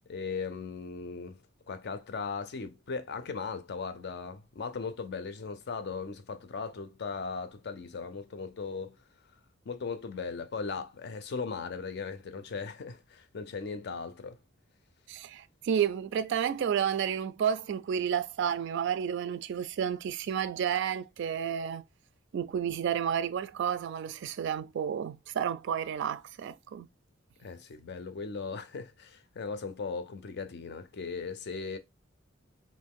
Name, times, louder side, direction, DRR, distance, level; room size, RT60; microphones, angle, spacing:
voice 1, 0.1-1.4 1.7-9.0 9.7-14.4 27.4-31.8, left 5 dB, 55° left, 0.5 m, -38 dB
voice 2, 15.1-21.8 22.3-26.9, right 8 dB, 60° right, 0.3 m, -31 dB
3.1 x 2.6 x 3.5 m
head